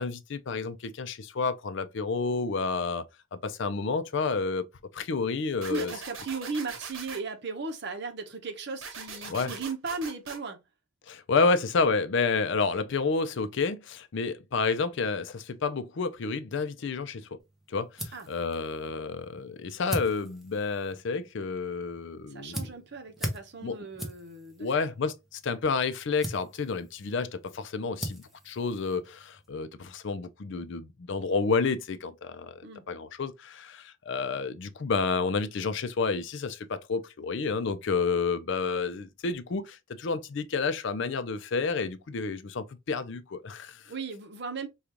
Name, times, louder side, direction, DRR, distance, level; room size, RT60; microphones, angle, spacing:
voice 1, 0.0-3.1 3.4-4.6 4.9-5.9 9.3-9.5 11.1-17.3 17.7-22.7 23.6-23.8 24.6-32.5 32.9-43.8, left 4 dB, 60° left, 0.5 m, -30 dB
sound 1, 5.6-7.2 8.8-10.4, right 5 dB, 75° right, 1.0 m, -41 dB
voice 2, 5.7-10.6 18.1-18.3 22.3-24.9 32.6-32.9 43.8-44.7, right 4 dB, 55° right, 0.8 m, -36 dB
sound 2, 17.4-29.5, equal, ahead, 0.8 m, -42 dB
5.0 x 2.4 x 2.9 m
head